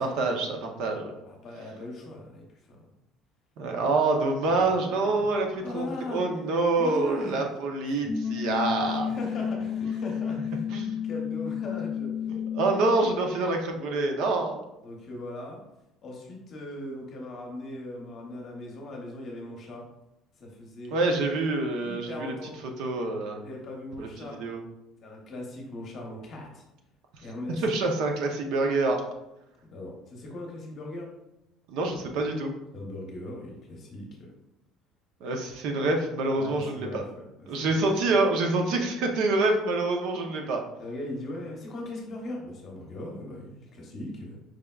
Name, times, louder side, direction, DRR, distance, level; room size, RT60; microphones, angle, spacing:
voice 1, 0.0-1.2 3.6-9.1 10.7-11.0 12.3-14.6 20.9-22.3 22.8-23.4 24.0-24.1 24.4-24.6 27.6-29.0 31.7-32.5 35.2-37.0 37.5-40.6, right 2 dB, 65° right, 3 dB, 0.6 m, -26 dB
voice 2, 1.2-2.9 4.4-5.2 5.6-6.3 6.8-7.4 7.8-8.1 8.8-10.7 11.0-12.1 14.8-15.6 16.0-19.8 20.4-21.0 21.8-22.6 23.4-24.4 25.0-26.6 27.2-27.6 29.6-31.1 32.7-34.3 36.4-38.0 40.8-44.4, left 1 dB, 35° left, 0 dB, 0.9 m, -39 dB
sound 1, 8.1-13.0, left 8 dB, 20° left, 0.4 m, -31 dB
4.9 x 3.4 x 2.3 m, 0.89 s
cardioid pair, 175°, 0 cm